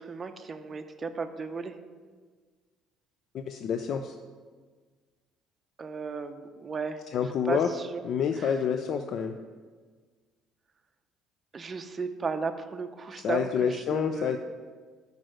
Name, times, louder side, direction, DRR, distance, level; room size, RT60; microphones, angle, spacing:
voice 1, 0.0-1.8 5.8-7.0 7.5-8.0 8.4-8.5 11.5-14.3, right 4 dB, 30° right, 7 dB, 0.5 m, -35 dB
voice 2, 3.3-4.2 7.1-7.7 8.0-9.4 13.2-14.4, left 7 dB, 55° left, 7 dB, 0.4 m, -28 dB
6.2 x 5.2 x 6.3 m, 1.5 s
cardioid pair, 105°, 0 cm